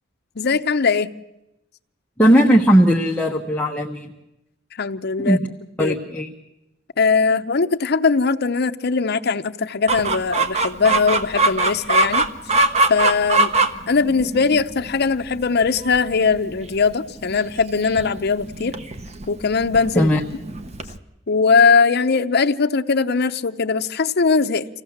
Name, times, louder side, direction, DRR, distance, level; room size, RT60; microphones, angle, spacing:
voice 1, 0.4-1.1 4.8-5.4 5.8-5.9 7.0-12.3 12.9-13.5 13.9-18.7 19.3-20.1 21.3-24.7, left 4 dB, 55° left, 8 dB, 0.7 m, -20 dB
voice 2, 2.2-4.1 5.2-5.5 5.8-6.3 19.9-20.2, equal, 10° left, -1 dB, 1.1 m, -17 dB
Chicken rooster, 9.9-21.0, right 3 dB, 35° right, 0.9 m, -23 dB
25.5 x 16.5 x 7.2 m, 0.92 s
head